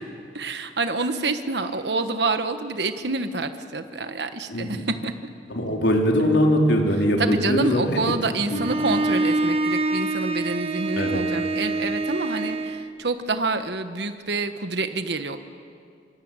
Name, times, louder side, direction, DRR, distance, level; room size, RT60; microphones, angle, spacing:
voice 1, 0.3-5.1 7.2-15.4, right 3 dB, 70° right, 8 dB, 1.4 m, -27 dB
voice 2, 4.5-4.8 5.5-8.0 8.5-8.6 11.0-11.2, equal, 90° left, 1 dB, 4.2 m, -21 dB
Bowed string instrument, 8.5-12.9, right 2 dB, 35° right, 1.5 m, -25 dB
25.0 x 24.5 x 9.1 m, 2.3 s
head